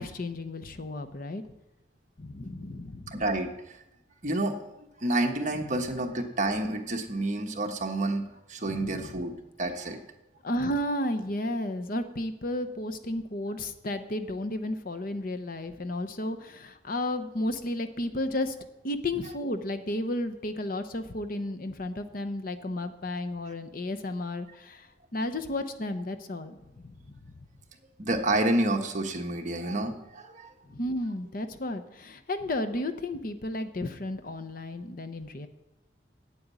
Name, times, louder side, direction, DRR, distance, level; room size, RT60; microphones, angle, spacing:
voice 1, 0.0-1.4 2.2-3.2 8.7-9.2 10.4-18.5 18.8-26.9 30.6-35.5, left 1 dB, 50° left, 9 dB, 0.9 m, -33 dB
voice 2, 3.1-3.8 4.2-8.2 8.5-9.3 9.6-10.0 28.0-30.5, right 2 dB, 45° right, 3 dB, 1.3 m, -29 dB
8.9 x 8.6 x 8.3 m, 0.91 s
head